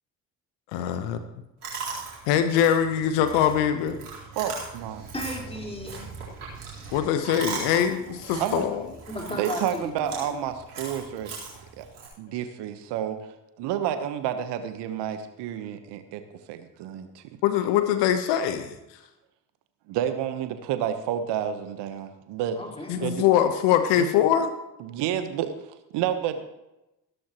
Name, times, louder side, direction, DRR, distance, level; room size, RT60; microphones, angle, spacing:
voice 1, 0.7-1.2 2.3-4.0 6.9-8.8 17.4-18.7 22.9-24.5, left 9 dB, 70° left, 9 dB, 1.1 m, -23 dB
Chewing mastication, 1.6-12.1, right 4 dB, 90° right, 4.1 m, -39 dB
voice 2, 4.3-5.1 8.4-8.6 9.3-11.3 11.8-11.9 12.2-13.2 13.6-16.2 16.5-17.2 19.9-22.6 23.0-23.2 24.8-25.5 25.9-26.5, right 10 dB, 65° right, 9 dB, 1.2 m, -30 dB
voice 3, 5.1-6.1 9.1-10.4 22.5-23.1, left 1 dB, 15° left, -1 dB, 4.4 m, -35 dB
15.5 x 13.0 x 3.1 m, 0.94 s
hypercardioid pair, 50°, 44 cm